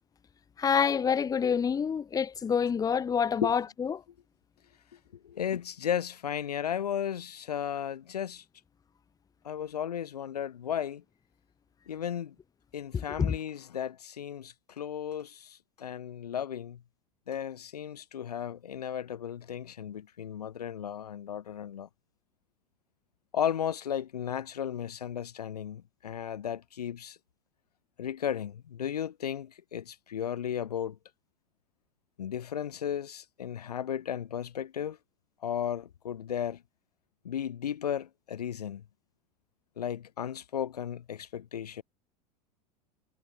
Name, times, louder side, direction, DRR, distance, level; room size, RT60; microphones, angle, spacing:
voice 1, 0.6-4.0 12.9-13.3, left 7 dB, 15° left, 1.0 m, -27 dB
voice 2, 5.2-8.4 9.4-11.0 11.9-12.3 12.7-16.8 17.3-21.9 23.3-27.2 28.0-31.0 32.2-35.0 35.4-36.6 37.2-38.8 39.8-41.8, left 9 dB, 70° left, 1.1 m, -35 dB
figure-of-eight pair, 80°, 21 cm